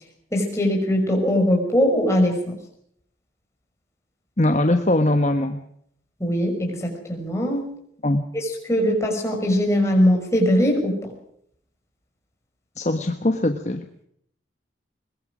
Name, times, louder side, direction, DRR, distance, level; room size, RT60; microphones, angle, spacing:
voice 1, 0.3-2.6 6.2-7.7 8.3-11.0, equal, 15° left, 0 dB, 5.9 m, -21 dB
voice 2, 4.4-5.6 8.0-8.2 12.8-13.9, left 1 dB, 35° left, 6 dB, 1.3 m, -21 dB
22.5 x 21.5 x 6.2 m, 0.69 s
head